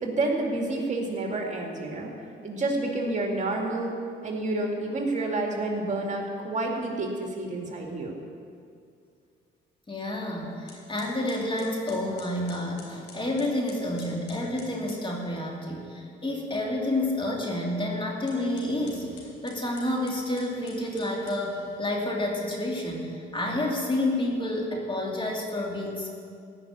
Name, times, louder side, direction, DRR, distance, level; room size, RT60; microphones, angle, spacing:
voice 1, 0.0-2.1 2.4-3.9 4.2-8.1, right 2 dB, 35° right, 0 dB, 2.3 m, -29 dB
voice 2, 9.9-19.0 19.4-26.1, left 1 dB, 25° left, -1 dB, 2.7 m, -29 dB
sound 1, 10.1-10.3 10.7-15.1 18.1-21.8, left 3 dB, 75° left, 3.9 m, -51 dB
15.5 x 5.8 x 9.5 m, 2.3 s
cardioid pair, 90°, 20 cm